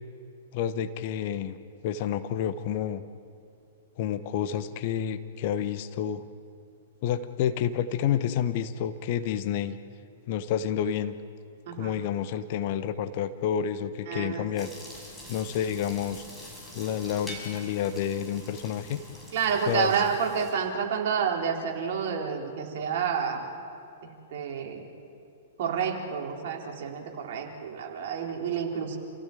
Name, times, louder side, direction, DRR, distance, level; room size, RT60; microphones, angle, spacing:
voice 1, 0.5-1.6 1.8-3.0 4.0-6.2 7.0-9.8 10.3-11.2 11.7-14.7 15.3-16.2 16.7-19.0 19.7-19.9, left 9 dB, 45° left, 12 dB, 1.0 m, -29 dB
voice 2, 11.7-12.0 14.1-14.5 19.3-23.5 24.0-24.8 25.6-29.0, right 6 dB, 50° right, 1 dB, 3.8 m, -29 dB
sound 1, 14.6-20.5, left 1 dB, 10° left, 6.4 m, -45 dB
28.0 x 15.5 x 9.1 m, 2.5 s
figure-of-eight pair, 105°, 0 cm